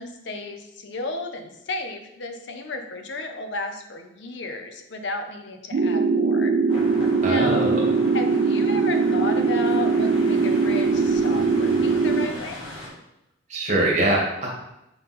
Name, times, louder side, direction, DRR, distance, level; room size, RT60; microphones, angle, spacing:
voice 1, 0.0-6.5 7.2-7.7 8.1-12.6, left 2 dB, 60° left, 6 dB, 0.7 m, -33 dB
sound 1, 5.7-12.3, right 4 dB, 55° right, 0.4 m, -21 dB
sound 2, 6.7-12.9, left 1 dB, 80° left, 1.9 m, -38 dB
voice 2, 7.2-7.8 13.5-14.5, right 1 dB, 35° right, -3 dB, 1.6 m, -23 dB
5.5 x 4.0 x 4.2 m, 0.87 s
head